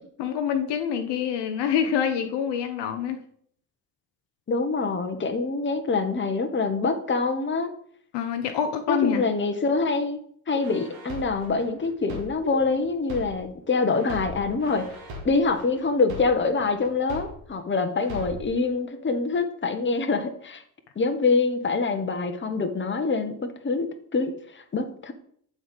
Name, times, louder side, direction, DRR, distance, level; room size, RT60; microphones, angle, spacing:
voice 1, 0.2-3.2 8.1-9.2, left 8 dB, 65° left, 7 dB, 0.8 m, -26 dB
voice 2, 4.5-7.7 8.9-10.2 10.5-14.9 15.2-20.6 21.0-23.4 23.6-25.1, left 4 dB, 25° left, 7 dB, 1.0 m, -25 dB
sound 1, 10.6-13.6 14.0-17.6 18.0-18.6, equal, 75° right, 1.6 m, -40 dB
7.4 x 4.0 x 5.2 m, 0.64 s
hypercardioid pair, 55°, 45 cm